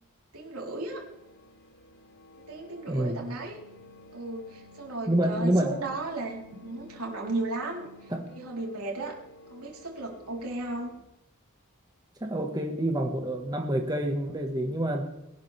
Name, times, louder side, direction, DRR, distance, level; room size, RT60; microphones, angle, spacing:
voice 1, 0.3-1.0 2.5-3.6 4.1-9.2 9.5-10.9, right 2 dB, 90° right, -1 dB, 4.0 m, -35 dB
sound 1, 0.9-11.0, left 2 dB, 55° left, 1.2 m, -53 dB
voice 2, 2.9-3.3 5.1-5.8 8.1-8.2 12.2-15.1, right 1 dB, 20° right, 2 dB, 1.6 m, -27 dB
22.0 x 11.5 x 3.5 m, 0.90 s
head